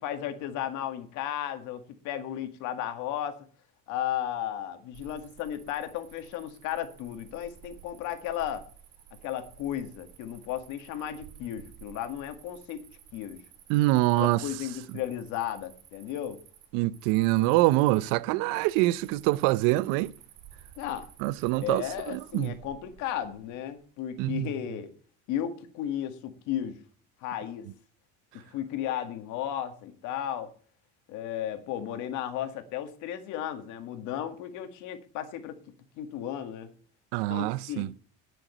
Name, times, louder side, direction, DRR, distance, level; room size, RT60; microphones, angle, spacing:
voice 1, 0.0-3.4 3.9-8.7 9.2-12.8 13.1-13.4 14.2-16.4 20.8-21.1 21.6-24.9 25.3-26.8 27.2-27.7 28.3-30.5 31.1-35.6 36.0-36.7 37.3-37.9, left 10 dB, 60° left, 2.0 m, -34 dB
Cricket, 4.9-23.9, right 10 dB, 50° right, 2.5 m, -54 dB
voice 2, 13.7-14.4 16.7-20.1 21.2-22.5 24.2-24.5 37.1-37.9, right 18 dB, 70° right, 0.7 m, -25 dB
9.2 x 7.8 x 7.7 m
cardioid pair, 170°, 35 cm